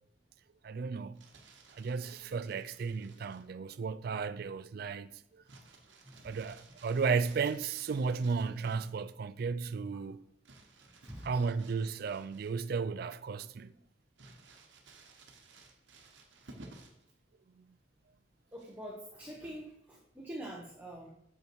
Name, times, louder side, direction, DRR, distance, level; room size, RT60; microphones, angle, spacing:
voice 1, 0.6-1.2 1.7-5.1 6.2-10.2 11.2-13.7 17.6-17.7, right 5 dB, 50° right, 0.3 m, -34 dB
Crumpling crinkling, 1.0-3.5 5.5-9.0 10.5-12.8 13.2-13.3 14.2-17.1 18.5-19.0, right 3 dB, 70° right, 1.1 m, -57 dB
voice 2, 6.0-6.4 11.0-11.5 18.5-21.1, right 1 dB, 10° right, 1.0 m, -45 dB
6.7 x 5.5 x 4.6 m
head